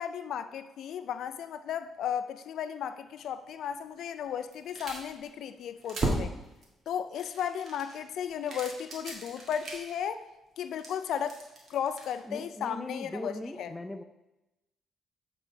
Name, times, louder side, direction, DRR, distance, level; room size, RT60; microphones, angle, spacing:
voice 1, 0.0-6.3 6.9-10.2 10.6-11.4 11.7-13.7, left 8 dB, 70° left, 11 dB, 0.3 m, -35 dB
sound 1, 3.6-3.7 4.4-5.3 5.6-6.7 7.1-10.0 10.6-12.2, right 2 dB, 45° right, 1.7 m, -36 dB
voice 2, 12.2-14.0, left 1 dB, 10° left, 8 dB, 0.5 m, -39 dB
8.0 x 3.9 x 4.4 m, 0.99 s
cardioid pair, 110°, 0 cm